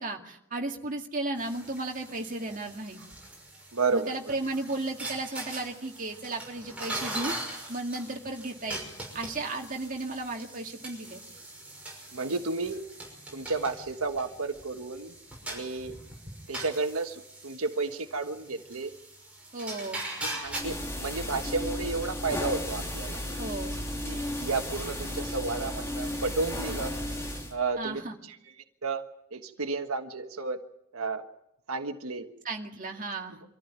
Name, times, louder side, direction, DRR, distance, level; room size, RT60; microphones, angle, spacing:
voice 1, 0.0-3.0 3.9-7.3 7.7-8.9 9.1-11.2 19.5-20.0 23.4-23.8 27.8-28.2 32.4-33.4, right 2 dB, 40° right, 2 dB, 2.1 m, -34 dB
sound 1, 1.4-20.6, right 1 dB, 5° right, 6.0 m, -41 dB
voice 2, 3.7-4.3 12.1-12.8 13.3-15.1 15.5-16.0 16.5-18.9 20.2-23.2 23.7-26.9 27.5-28.4 28.8-29.0 29.3-30.6 30.9-31.2 31.7-32.3, right 3 dB, 90° right, 6 dB, 1.4 m, -32 dB
sound 2, 20.5-27.5, left 1 dB, 15° left, 3.0 m, -34 dB
25.0 x 14.0 x 9.4 m, 0.82 s
head